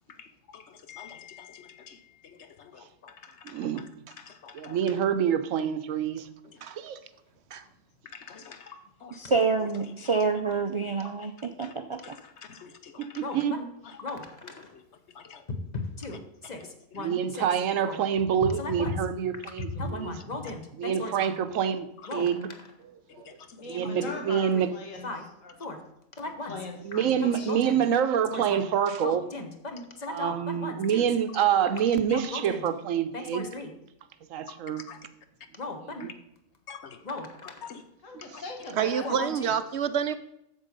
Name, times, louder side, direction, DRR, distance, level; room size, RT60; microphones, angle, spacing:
voice 1, 0.1-5.0 6.4-6.6 8.0-9.2 9.6-9.9 10.2-10.3 11.6-11.7 12.0-13.2 13.8-14.0 14.4-14.8 15.1-15.4 16.4-17.1 22.0-22.1 23.1-23.7 26.9-27.0 30.9-31.0 32.1-32.2 34.4-34.6 34.9-35.0 36.0-36.1 36.7-37.0 37.4-37.8 38.3-38.4, left 7 dB, 65° left, 1.1 m, -48 dB
voice 2, 3.4-3.8 4.5-6.3 6.8-7.0 13.2-13.6 17.0-20.2 20.8-22.5 23.7-24.7 26.8-29.2 30.1-33.5 34.3-34.8 36.0-36.1, right 8 dB, 85° right, 1.1 m, -26 dB
voice 3, 9.2-12.2, right 4 dB, 45° right, 0.4 m, -27 dB
voice 4, 13.2-13.7 14.0-14.7 15.5-17.5 17.8-18.0 18.4-19.0 19.7-21.4 22.1-22.3 24.0-24.2 24.5-24.7 25.0-25.2 25.6-25.8 26.2-26.6 27.2-27.8 28.3-28.6 29.0-31.1 32.1-32.6 33.1-33.7 35.5-36.1 37.0-37.6 39.0-39.5, left 3 dB, 35° left, 1.2 m, -36 dB
voice 5, 23.5-25.6 26.2-27.6 38.0-39.5, left 2 dB, 80° left, 1.8 m, -40 dB
voice 6, 38.8-40.1, right 8 dB, 65° right, 0.8 m, -29 dB
7.6 x 7.1 x 5.3 m
omnidirectional pair, 1.3 m